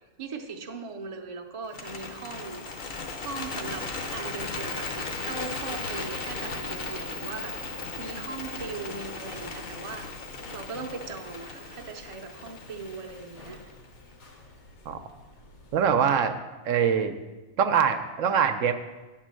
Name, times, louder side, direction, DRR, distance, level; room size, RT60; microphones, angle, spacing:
voice 1, 0.2-10.1 10.5-13.6, right 4 dB, 35° right, 3 dB, 0.6 m, -39 dB
Bird, 1.6-13.8, left 3 dB, 50° left, 0.9 m, -37 dB
sound 1, 2.9-15.9, left 2 dB, 70° left, 1.5 m, -48 dB
voice 2, 15.7-16.3 16.6-17.1 17.6-18.7, right 7 dB, 75° right, 8 dB, 1.0 m, -23 dB
9.1 x 4.4 x 7.5 m, 1.2 s
omnidirectional pair, 1.4 m